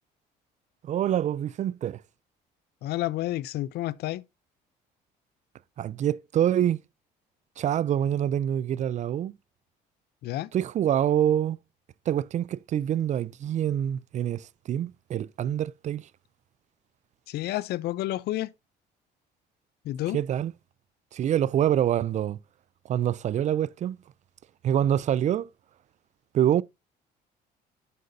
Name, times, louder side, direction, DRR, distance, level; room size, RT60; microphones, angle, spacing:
voice 1, 0.8-2.0 5.8-6.8 7.6-9.3 10.5-11.6 12.1-16.0 20.1-20.5 21.1-22.4 22.9-24.0 24.6-25.5 26.3-26.6, right 10 dB, 45° right, 0.4 m, -26 dB
voice 2, 2.8-4.2 10.2-10.5 17.3-18.5 19.8-20.2, left 15 dB, 75° left, 0.6 m, -30 dB
10.5 x 7.8 x 2.6 m
cardioid pair, 110°, 17 cm